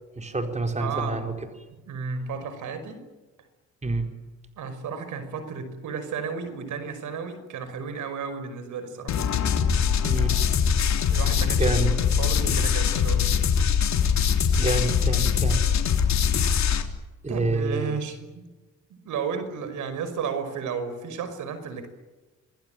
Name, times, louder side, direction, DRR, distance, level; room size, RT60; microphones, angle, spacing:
voice 1, 0.2-1.3 3.8-4.1 10.0-10.3 11.5-11.9 14.6-15.6 17.2-17.9, right 2 dB, 25° right, 5 dB, 4.5 m, -27 dB
voice 2, 0.8-1.3 1.9-3.0 4.6-9.1 11.1-11.8 12.2-13.3 17.3-18.4 18.9-21.9, right 5 dB, 75° right, 11 dB, 5.6 m, -33 dB
sound 1, 9.1-16.8, left 7 dB, 65° left, 3.4 m, -22 dB
26.5 x 20.5 x 9.1 m, 1.2 s
cardioid pair, 90°, 30 cm